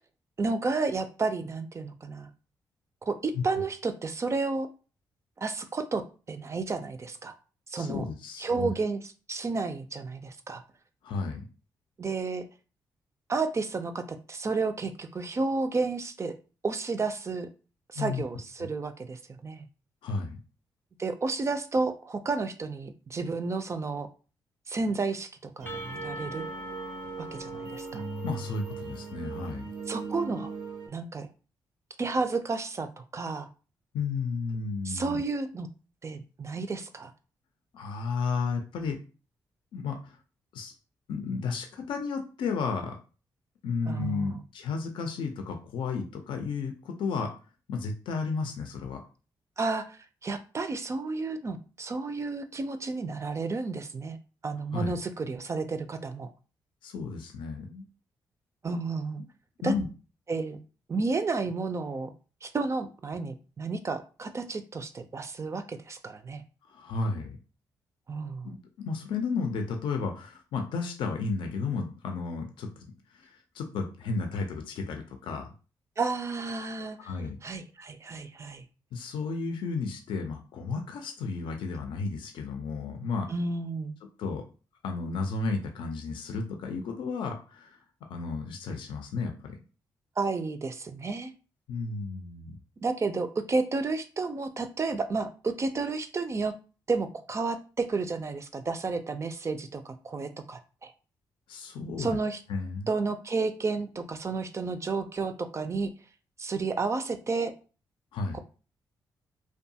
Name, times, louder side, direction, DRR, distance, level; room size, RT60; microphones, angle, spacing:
voice 1, 0.4-2.3 3.0-4.7 5.4-7.4 7.7-8.1 8.4-10.6 12.0-12.5 13.3-16.3 16.6-17.5 17.9-19.7 21.0-24.1 24.7-26.4 27.2-28.0 29.9-30.5 30.9-31.3 32.0-33.5 34.8-35.7 36.0-37.1 43.9-44.4 49.6-54.2 54.4-56.3 58.6-59.2 59.6-59.8 60.3-60.6 60.9-62.1 62.4-66.4 68.1-68.5 76.0-78.6 83.3-83.9 90.2-91.3 92.8-96.5 96.9-100.9 102.0-102.4 102.9-105.9 106.4-107.5 108.3-108.4, right 3 dB, 35° right, 9 dB, 0.4 m, -31 dB
voice 2, 7.7-8.7 11.0-11.4 18.0-18.2 18.6-18.7 20.0-20.4 28.2-29.7 33.9-35.2 37.7-39.0 39.7-40.1 40.5-40.7 41.1-43.0 43.6-47.3 47.7-49.0 54.7-54.9 56.8-57.9 59.6-59.9 66.7-67.4 68.4-72.7 73.1-75.5 77.0-77.4 78.9-83.3 84.2-84.4 84.8-87.8 88.1-89.6 91.7-92.5 101.5-102.2 102.5-102.9 108.1-108.4, left 4 dB, 80° left, 4 dB, 0.5 m, -33 dB
sound 1, 25.6-30.9, right 4 dB, 85° right, 0.7 m, -39 dB
Percussion / Church bell, 25.7-29.6, left 1 dB, 25° left, 0.4 m, -44 dB
2.6 x 2.3 x 2.7 m, 0.35 s
cardioid pair, 65°, 8 cm